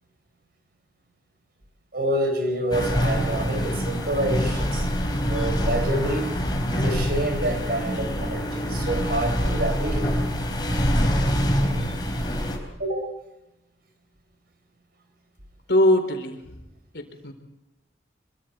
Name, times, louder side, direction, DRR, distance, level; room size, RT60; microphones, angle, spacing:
voice 1, 1.9-4.9 5.3-6.3 6.7-10.1 12.8-13.1, right 1 dB, 60° right, 4.6 m, -27 dB
sound 1, 2.7-12.6, equal, 25° left, 4.1 m, -25 dB
voice 2, 15.7-16.6 16.9-17.3, left 1 dB, 75° left, 4.2 m, -22 dB
26.0 x 24.5 x 4.5 m
head